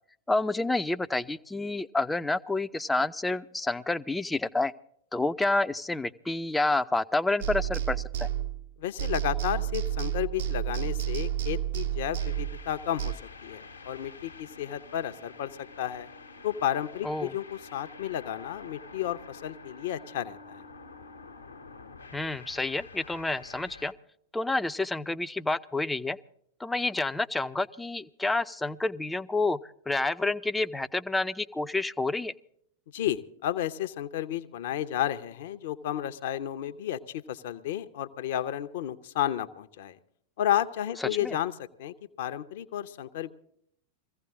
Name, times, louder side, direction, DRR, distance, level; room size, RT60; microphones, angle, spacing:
voice 1, 0.3-4.7 5.1-8.3 17.0-17.4 22.1-23.9 24.3-26.2 26.6-29.6 29.9-32.3 41.0-41.4, left 2 dB, 5° left, 12 dB, 0.5 m, -29 dB
sound 1, 7.4-8.7 9.0-13.1, right 11 dB, 60° right, 1.0 m, -31 dB
voice 2, 8.8-15.5 15.8-16.1 16.4-20.6 32.9-37.0 37.3-40.0 40.4-43.3, left 11 dB, 55° left, 9 dB, 0.8 m, -32 dB
sound 2, 12.2-23.9, left 4 dB, 80° left, 1.2 m, -48 dB
22.0 x 15.5 x 3.6 m, 0.67 s
figure-of-eight pair, 90°, 0 cm